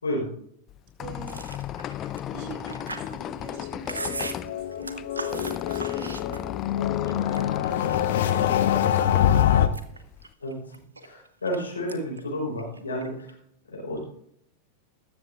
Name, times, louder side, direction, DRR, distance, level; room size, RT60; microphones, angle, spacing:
Squeak, 0.7-10.3, left 11 dB, 30° left, 0.4 m, -35 dB
voice 1, 1.0-1.4 2.3-6.4 7.1-9.7, right 7 dB, 40° right, 3 dB, 4.4 m, -45 dB
Chewing mastication, 1.2-6.7 7.1-8.1 8.6-9.2 9.6-11.6 11.9-12.2 12.5-13.3, right 3 dB, 75° right, 1.1 m, -38 dB
sound 1, 3.5-9.7, left 11 dB, 60° left, 0.8 m, -25 dB
voice 2, 11.0-13.1 13.7-14.0, left 1 dB, 75° left, -2 dB, 4.4 m, -30 dB
20.5 x 7.4 x 2.6 m, 0.69 s
figure-of-eight pair, 90°, 0 cm